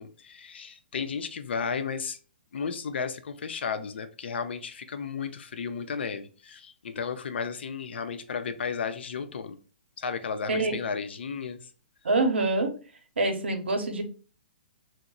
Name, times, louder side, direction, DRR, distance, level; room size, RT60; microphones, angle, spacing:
voice 1, 0.0-2.2 2.5-9.6 10.0-11.6, left 6 dB, 75° left, 0.5 m, -33 dB
voice 2, 12.0-12.7 13.2-14.0, right 2 dB, 90° right, 0.8 m, -25 dB
2.9 x 2.1 x 3.7 m
hypercardioid pair, 140°, 6 cm